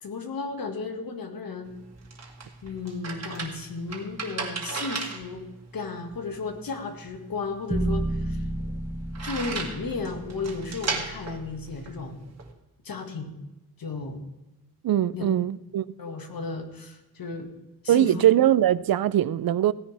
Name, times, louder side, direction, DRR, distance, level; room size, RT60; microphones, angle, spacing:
voice 1, 0.0-1.7 2.6-5.4 5.7-8.4 9.2-12.2 12.8-13.3 13.8-14.2 15.1-15.3 16.0-17.5 17.8-18.2, left 4 dB, 65° left, 1.9 m, -34 dB
sound 1, 1.6-12.5, right 4 dB, 45° right, 2.1 m, -37 dB
sound 2, 7.7-11.9, right 1 dB, 15° right, 0.7 m, -32 dB
voice 2, 14.8-15.8 17.9-19.7, right 11 dB, 70° right, 0.5 m, -21 dB
17.0 x 10.5 x 3.4 m
wide cardioid pair, 130°, 37 cm